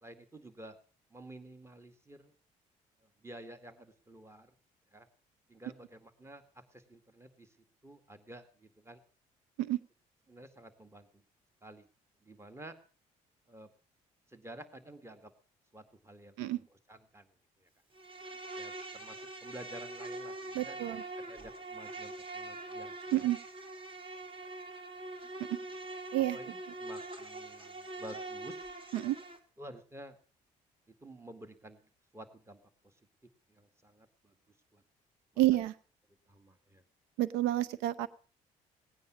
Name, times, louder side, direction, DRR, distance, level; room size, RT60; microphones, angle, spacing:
voice 1, 0.0-0.8 1.1-2.3 3.2-4.5 4.9-5.1 5.5-7.5 7.8-9.0 10.3-11.2 11.6-11.9 12.2-12.8 13.5-13.7 14.3-15.3 15.7-16.3 16.9-17.3 17.6-17.7 18.6-21.0 21.3-22.9 26.3-28.7 29.6-30.2 31.0-31.8 32.1-32.9 33.5-34.3 34.7-34.8 36.3-36.8, right 1 dB, 15° right, 9 dB, 2.1 m, -51 dB
Insect, 17.9-29.4, right 2 dB, 35° right, 2.6 m, -44 dB
voice 2, 20.5-21.0 23.1-23.4 25.5-25.6 26.1-26.4 28.9-29.2 35.4-35.7 37.2-38.1, right 15 dB, 85° right, 18 dB, 0.7 m, -29 dB
18.0 x 9.5 x 6.2 m, 0.40 s
supercardioid pair, 60°, 17 cm